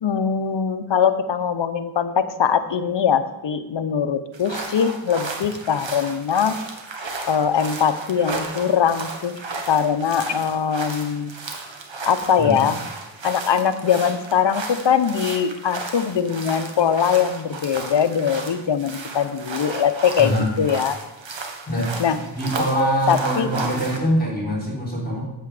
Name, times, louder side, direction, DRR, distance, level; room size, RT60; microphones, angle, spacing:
voice 1, 0.0-6.6 7.3-9.4 9.7-11.3 12.1-12.8 13.2-21.0 22.0-22.2 23.1-23.5, left 7 dB, 60° left, 10 dB, 0.8 m, -21 dB
sound 1, 4.3-24.0, right 3 dB, 65° right, 1.4 m, -34 dB
voice 2, 20.2-20.5 21.7-21.9 22.4-25.2, equal, 20° left, -4 dB, 3.9 m, -23 dB
8.1 x 7.6 x 4.9 m, 1.0 s
cardioid pair, 45°, 48 cm